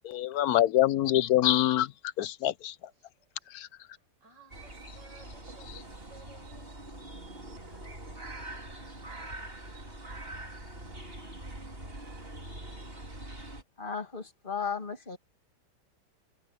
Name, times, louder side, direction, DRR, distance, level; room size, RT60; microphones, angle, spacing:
voice 1, 0.0-1.9 2.2-2.7 3.5-3.7, left 13 dB, 70° left, 1.0 m, -25 dB
voice 2, 2.9-3.5 3.8-6.9 8.0-8.1, right 3 dB, 85° right, 7.5 m, -58 dB
sound 1, 4.5-13.6, right 1 dB, 30° right, 3.8 m, -43 dB
voice 3, 13.8-15.2, left 6 dB, 30° left, 2.3 m, -35 dB
omnidirectional pair, 1.9 m